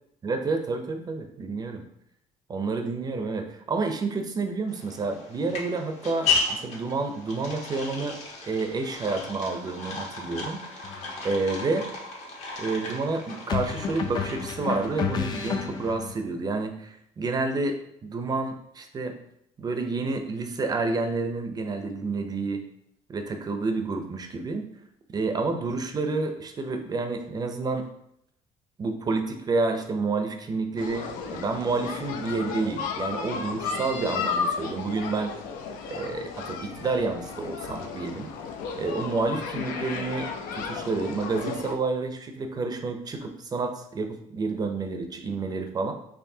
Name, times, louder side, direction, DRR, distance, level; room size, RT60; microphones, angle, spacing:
voice 1, 0.2-1.8 2.5-8.2 8.4-10.9 11.2-11.9 12.6-19.1 19.6-22.6 23.1-24.6 25.1-27.9 28.8-31.1 31.3-35.3 35.9-38.3 38.8-45.9, right 3 dB, 30° right, 6 dB, 0.5 m, -29 dB
sound 1, 4.7-15.9, left 4 dB, 55° left, 1.1 m, -34 dB
sound 2, 10.8-11.1 13.5-16.2, left 6 dB, 30° left, 0.4 m, -31 dB
sound 3, 30.8-41.7, left 5 dB, 85° left, 0.5 m, -34 dB
4.6 x 3.0 x 2.7 m, 0.75 s
cardioid pair, 130°, 14 cm